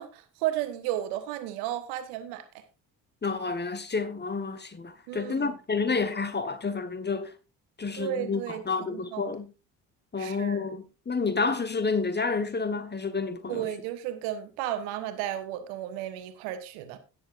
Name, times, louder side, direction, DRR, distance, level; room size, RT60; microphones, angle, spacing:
voice 1, 0.0-2.6 5.1-5.5 7.9-8.6 8.9-9.3 10.2-10.6 13.5-17.0, right 12 dB, 65° right, 1.4 m, -33 dB
voice 2, 3.2-7.3 7.8-9.5 10.1-13.7, left 4 dB, 20° left, 1.3 m, -29 dB
17.5 x 6.9 x 2.5 m
figure-of-eight pair, 45°, 48 cm